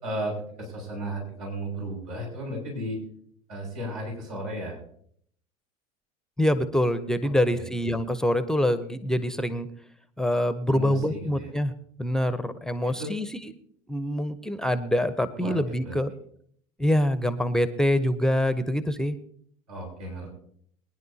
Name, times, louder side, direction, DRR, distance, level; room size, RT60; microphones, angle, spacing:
voice 1, 0.0-3.0 3.5-4.8 7.5-7.6 10.7-11.5 12.8-13.1 15.4-15.6 15.8-16.0 19.7-20.3, right 1 dB, 70° right, -2 dB, 5.8 m, -34 dB
voice 2, 6.4-9.7 10.2-11.7 12.0-13.5 13.9-16.1 16.8-19.2, left 1 dB, 5° left, 12 dB, 0.8 m, -25 dB
22.5 x 10.5 x 2.8 m, 0.64 s
figure-of-eight pair, 75°, 19 cm